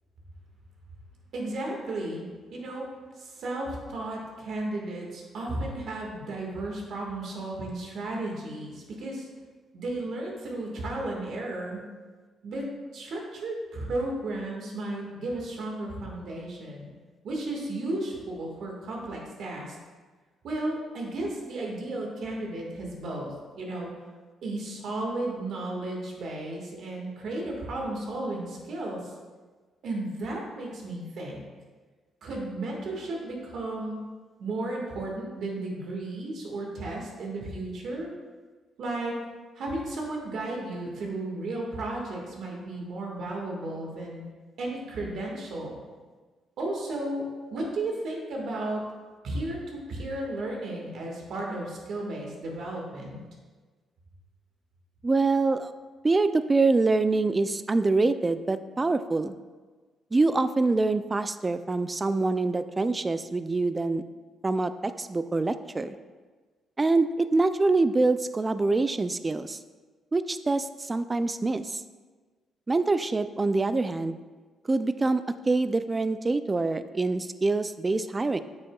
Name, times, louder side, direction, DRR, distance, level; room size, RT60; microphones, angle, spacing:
voice 1, 1.3-2.9 3.2-9.3 9.7-11.9 12.4-12.6 12.9-16.9 17.2-19.8 20.4-23.9 24.4-29.1 29.8-31.4 32.2-34.0 34.4-38.1 38.8-39.1 39.6-44.2 44.6-45.8 46.6-47.3 47.5-48.8 49.2-53.2, right 2 dB, 65° right, -1 dB, 1.7 m, -34 dB
voice 2, 55.0-55.7 56.0-59.3 60.1-64.0 64.4-66.0 66.8-69.6 70.1-71.8 72.7-74.2 74.7-78.4, right 3 dB, 25° right, 12 dB, 0.3 m, -25 dB
8.2 x 6.4 x 2.3 m, 1.4 s
cardioid pair, 90°, 0 cm